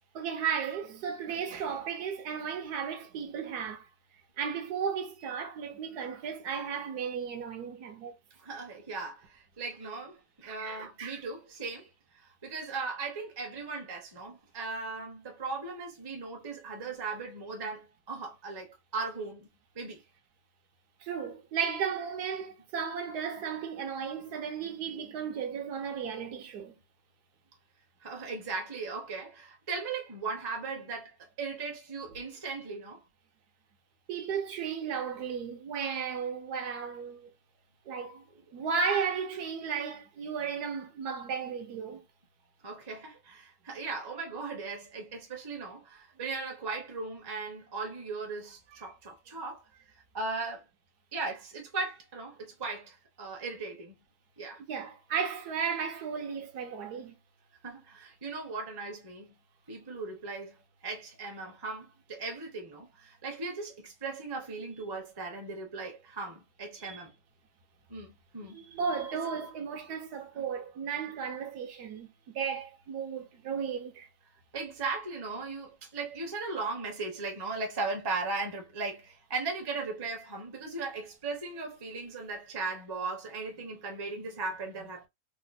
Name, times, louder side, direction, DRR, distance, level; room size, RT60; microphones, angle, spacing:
voice 1, 0.1-3.9 4.4-8.1 10.4-11.2 21.0-26.7 34.1-37.3 37.9-38.2 38.5-42.0 54.7-57.1 66.8-67.0 68.5-74.1, right 6 dB, 70° right, 1.2 m, -34 dB
voice 2, 8.4-19.5 19.7-20.0 28.0-33.0 38.6-38.7 42.6-49.6 50.1-50.6 51.1-53.9 54.4-54.6 57.6-59.3 59.7-60.5 60.8-67.1 67.9-68.6 69.1-69.2 70.3-70.4 74.5-85.1, right 3 dB, 20° right, 0.6 m, -38 dB
3.4 x 2.1 x 4.0 m
omnidirectional pair, 1.9 m